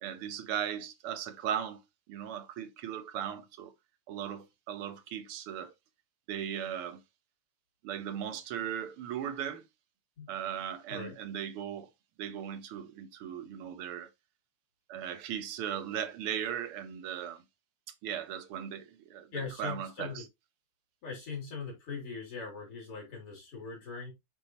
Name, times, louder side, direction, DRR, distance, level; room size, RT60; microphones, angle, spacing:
voice 1, 0.0-1.8 2.1-3.7 4.1-5.7 6.3-7.0 7.8-9.6 10.3-11.9 12.2-14.1 14.9-17.4 18.0-19.3 19.6-20.2, right 9 dB, 80° right, 1.8 m, -37 dB
voice 2, 19.3-20.2 21.0-24.1, left 5 dB, 80° left, 4.4 m, -40 dB
8.3 x 4.1 x 3.1 m
omnidirectional pair, 2.4 m